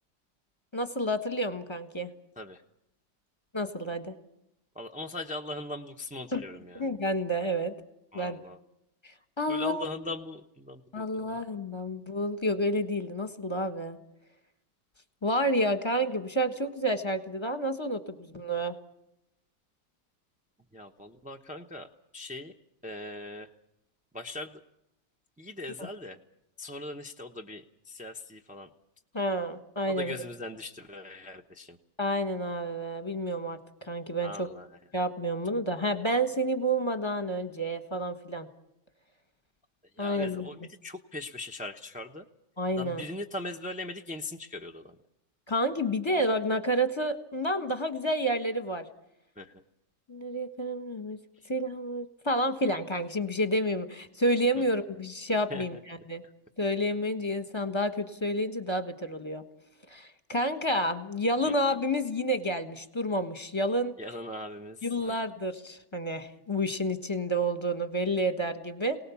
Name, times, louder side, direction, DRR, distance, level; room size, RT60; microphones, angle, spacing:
voice 1, 0.7-2.1 3.5-4.1 6.3-6.4 6.7-7.7 8.1-8.4 9.0-9.8 10.9-14.0 15.2-18.7 29.1-30.1 32.0-34.5 34.9-38.5 40.0-40.5 42.6-43.0 45.5-48.9 50.1-51.2 51.5-56.2 56.6-59.4 59.9-63.9 64.8-69.0, equal, 15° left, 9 dB, 1.2 m, -29 dB
voice 2, 4.7-6.8 8.1-8.6 9.5-11.4 20.7-21.9 22.1-22.5 22.8-23.5 24.1-24.6 25.4-26.2 26.6-28.7 29.9-31.8 34.2-34.7 39.9-42.3 42.8-45.0 49.4-49.6 51.4-51.5 54.5-54.6 55.5-55.8 56.2-56.3 61.4-61.5 64.0-65.2, left 2 dB, 10° right, 2 dB, 0.4 m, -40 dB
27.5 x 18.5 x 7.1 m, 0.85 s
omnidirectional pair, 1.9 m